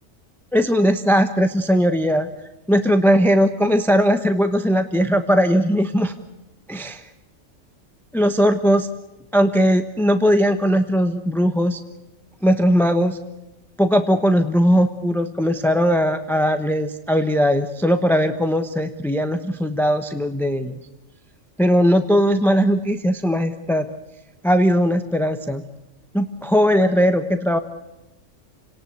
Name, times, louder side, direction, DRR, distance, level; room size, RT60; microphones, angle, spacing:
voice 1, 0.5-2.3 2.7-6.1 6.7-7.0 8.1-8.9 9.3-11.8 12.4-13.2 13.8-20.8 21.6-23.9 24.4-25.6 26.1-27.6, equal, ahead, 8 dB, 1.0 m, -19 dB
29.5 x 18.5 x 8.1 m, 1.0 s
omnidirectional pair, 1.3 m